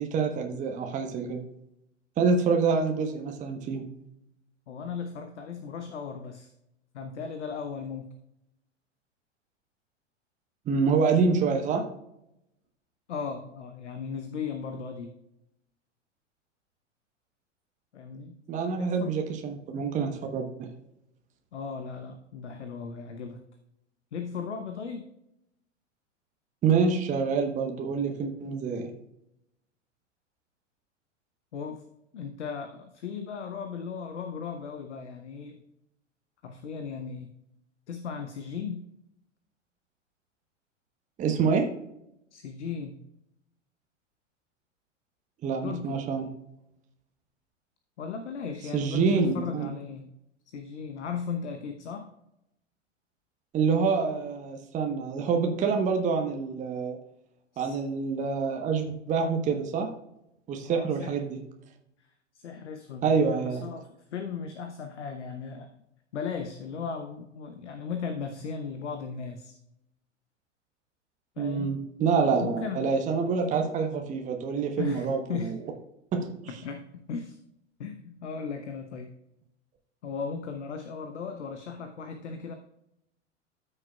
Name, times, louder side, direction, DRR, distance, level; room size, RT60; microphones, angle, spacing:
voice 1, 0.0-1.4 2.2-3.9 10.7-11.8 18.5-20.7 26.6-28.9 41.2-41.6 45.4-46.3 48.7-49.7 53.5-57.0 57.6-59.9 60.5-61.4 63.0-63.6 71.4-75.5 76.1-76.3, right 5 dB, 20° right, 4 dB, 0.9 m, -26 dB
voice 2, 4.7-6.5 6.9-8.1 13.1-15.1 17.9-18.4 18.8-19.1 21.5-23.4 24.1-25.0 31.5-31.8 32.1-35.6 36.4-37.3 37.9-38.8 42.3-43.0 45.6-46.0 48.0-50.1 50.5-52.1 57.5-57.8 60.6-61.2 62.0-62.1 62.3-65.7 66.1-69.6 71.4-71.8 72.4-72.9 74.8-75.5 76.6-77.4 77.8-79.1 80.0-82.5, left 6 dB, 65° left, 6 dB, 0.9 m, -36 dB
13.0 x 6.5 x 2.3 m, 0.83 s
figure-of-eight pair, 95°, 37 cm